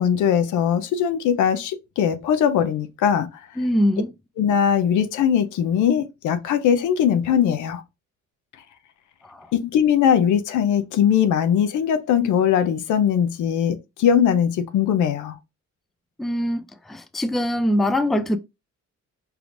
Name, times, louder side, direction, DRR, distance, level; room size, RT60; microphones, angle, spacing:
voice 1, 0.0-3.3 4.4-7.8 9.5-15.4, left 8 dB, 75° left, 0.7 m, -20 dB
voice 2, 3.6-4.1 9.2-9.5 16.2-18.4, left 1 dB, ahead, 0.4 m, -23 dB
4.7 x 3.4 x 2.5 m
cardioid pair, 90°, 30 cm